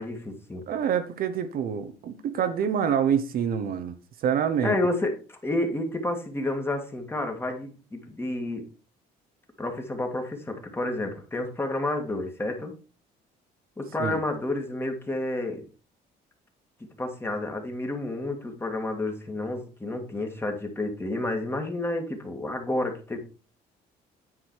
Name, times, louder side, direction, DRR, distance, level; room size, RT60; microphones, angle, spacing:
voice 1, 0.0-0.6 4.6-8.6 9.6-12.7 13.8-15.6 17.0-23.2, left 2 dB, 15° left, 2.0 m, -30 dB
voice 2, 0.7-3.9 4.2-4.8 14.0-14.2, right 8 dB, 60° right, 1.0 m, -26 dB
9.8 x 4.9 x 4.7 m
cardioid pair, 110°, 17 cm